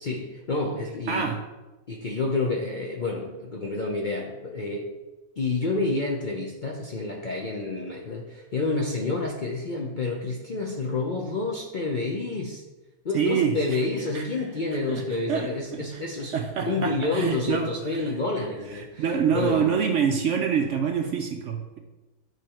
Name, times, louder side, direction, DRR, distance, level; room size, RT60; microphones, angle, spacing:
voice 1, 0.0-1.3 1.9-4.9 5.4-12.6 13.0-16.3 16.6-19.7, left 3 dB, 50° left, -1 dB, 0.6 m, -29 dB
voice 2, 1.1-1.4 13.1-13.6 14.1-14.3 14.9-16.0 16.3-18.1 18.7-21.8, right 7 dB, 65° right, 4 dB, 0.8 m, -26 dB
9.3 x 3.3 x 4.3 m, 1.1 s
omnidirectional pair, 1.6 m